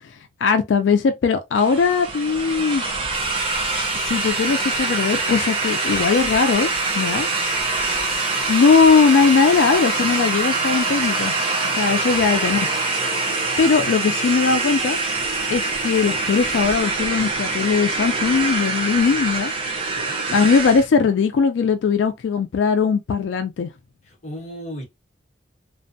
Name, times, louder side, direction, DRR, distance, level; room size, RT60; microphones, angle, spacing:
voice 1, 0.4-2.8 3.9-7.3 8.5-11.3 11.8-12.7 13.6-15.0 15.5-19.5 20.3-23.7, left 5 dB, 90° left, 0.3 m, -19 dB
sound 1, 1.5-20.9, right 3 dB, 30° right, 0.6 m, -24 dB
sound 2, 3.1-16.6, right 2 dB, 10° right, 1.1 m, -32 dB
voice 2, 12.1-12.6 13.8-13.9 19.9-20.2 24.1-24.8, equal, 40° left, 1.0 m, -36 dB
2.5 x 2.1 x 2.6 m
head